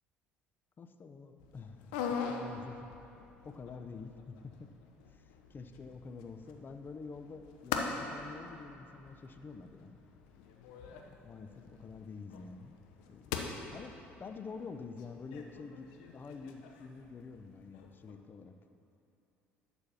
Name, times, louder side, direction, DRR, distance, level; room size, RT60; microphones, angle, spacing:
voice 1, 0.8-2.9 3.4-4.7 5.1-10.0 10.9-12.8 13.1-13.9 14.2-18.5, left 4 dB, 35° left, 7 dB, 0.7 m, -48 dB
sound 1, 1.4-18.1, left 5 dB, 70° left, 0.8 m, -44 dB
11.5 x 4.4 x 6.9 m, 2.8 s
hypercardioid pair, 60°, 6 cm